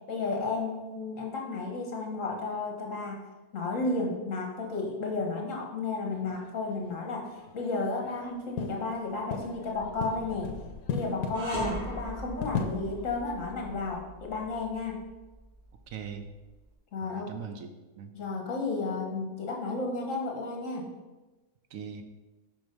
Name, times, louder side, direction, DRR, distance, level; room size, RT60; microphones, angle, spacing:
voice 1, 0.1-3.2 3.5-7.3 7.5-10.5 10.9-15.0 16.9-17.3 18.1-20.9, left 3 dB, 65° left, 1 dB, 1.7 m, -32 dB
sound 1, 6.1-14.0, left 6 dB, 80° left, 1.1 m, -39 dB
sound 2, 11.3-16.6, right 2 dB, 50° right, 2.8 m, -40 dB
voice 2, 15.9-16.3 17.0-18.1 21.7-22.0, right 6 dB, 70° right, 7 dB, 1.1 m, -41 dB
6.2 x 5.2 x 5.3 m, 1.2 s
omnidirectional pair, 1.5 m